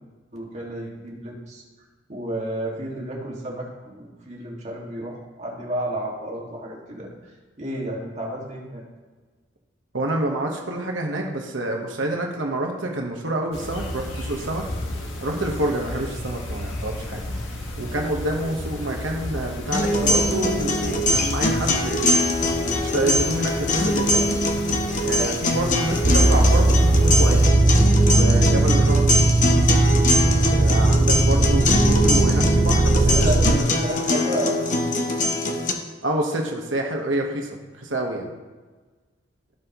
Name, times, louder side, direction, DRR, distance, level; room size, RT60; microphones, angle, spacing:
voice 1, 0.3-1.6 2.1-7.1 7.6-8.8 19.9-20.2 33.0-35.3, right 1 dB, 40° right, -3 dB, 2.0 m, -31 dB
voice 2, 9.9-14.7 15.2-17.2 17.8-22.2 22.8-24.4 25.0-27.4 28.1-29.2 30.4-33.3 36.0-37.5 37.8-38.3, right 1 dB, 90° right, 1 dB, 1.3 m, -27 dB
sound 1, 13.5-27.5, left 1 dB, 90° left, 1.6 m, -32 dB
sound 2, 19.7-35.7, left 1 dB, 40° left, 0.9 m, -23 dB
sound 3, 26.0-33.6, right 2 dB, 20° right, 0.3 m, -18 dB
16.0 x 5.5 x 3.1 m, 1.3 s
head